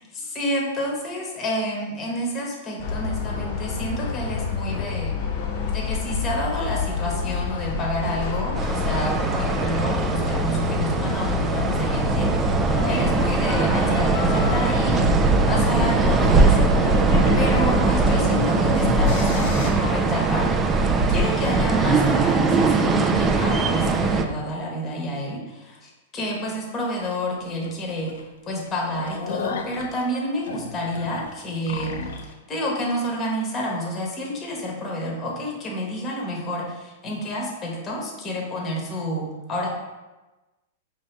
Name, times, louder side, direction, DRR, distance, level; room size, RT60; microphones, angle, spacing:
voice 1, 0.1-5.2 5.7-12.6 12.9-16.7 17.0-20.5 20.8-31.9 32.5-39.7, equal, 25° left, -2 dB, 1.1 m, -29 dB
sound 1, 2.8-19.7, left 5 dB, 50° left, 0.8 m, -28 dB
sound 2, 8.5-24.2, right 3 dB, 20° right, 0.3 m, -21 dB
sound 3, 27.0-27.2 27.6-27.7 28.1-28.2 28.6-32.3, left 5 dB, 80° left, 0.5 m, -34 dB
5.2 x 2.8 x 3.3 m, 1.1 s
hypercardioid pair, 135°, 0 cm